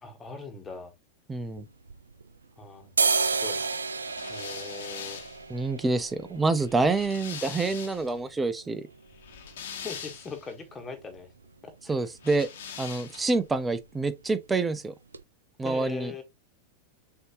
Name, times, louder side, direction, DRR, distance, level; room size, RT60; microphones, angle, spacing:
voice 1, 0.0-0.9 2.6-3.8 4.3-5.2 9.8-11.3 11.6-11.9 15.6-16.2, left 4 dB, 20° left, 1.5 m, -41 dB
voice 2, 1.3-1.6 5.5-8.8 11.9-12.5 12.8-14.9 15.6-16.1, right 3 dB, 15° right, 0.5 m, -27 dB
sound 1, 1.4-2.4 2.8-10.5 10.8-10.9 11.2-11.7 12.0-12.3 12.5-12.8 13.0-13.8 14.1-14.3 14.8-14.9 15.1-15.2, right 4 dB, 80° right, 0.3 m, -32 dB
sound 2, 4.1-8.2 9.1-10.5 12.2-13.4, left 7 dB, 65° left, 1.2 m, -42 dB
6.6 x 2.8 x 2.9 m
figure-of-eight pair, 90°, 0 cm